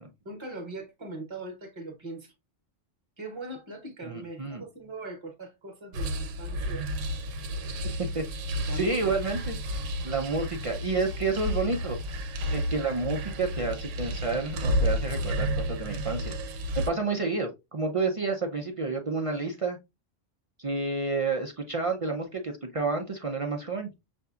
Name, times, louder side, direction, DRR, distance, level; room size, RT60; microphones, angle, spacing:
voice 1, 0.2-2.3 3.2-6.9 8.7-9.0, right 2 dB, 25° right, 1.0 m, -40 dB
voice 2, 4.0-4.6 8.1-8.2 8.7-9.6 10.0-12.0 12.5-16.4 16.7-19.8 20.6-23.9, right 3 dB, 55° right, 0.3 m, -30 dB
sound 1, 5.9-16.9, equal, 80° right, 1.0 m, -31 dB
6.6 x 2.6 x 2.3 m
omnidirectional pair, 1.3 m